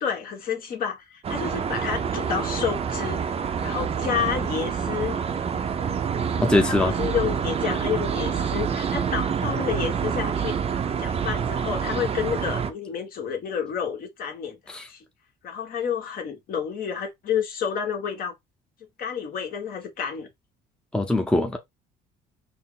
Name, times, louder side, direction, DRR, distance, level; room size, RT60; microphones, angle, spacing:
voice 1, 0.0-5.2 6.6-10.5 11.0-14.6 14.9-15.0 15.4-18.3 19.0-20.3, left 7 dB, 60° left, 1.4 m, -30 dB
sound 1, 1.2-12.7, right 7 dB, 35° right, 0.6 m, -27 dB
voice 2, 6.4-6.9 14.7-14.9 20.9-21.6, left 2 dB, 5° left, 0.7 m, -22 dB
4.3 x 2.1 x 3.7 m
cardioid pair, 110°, 17 cm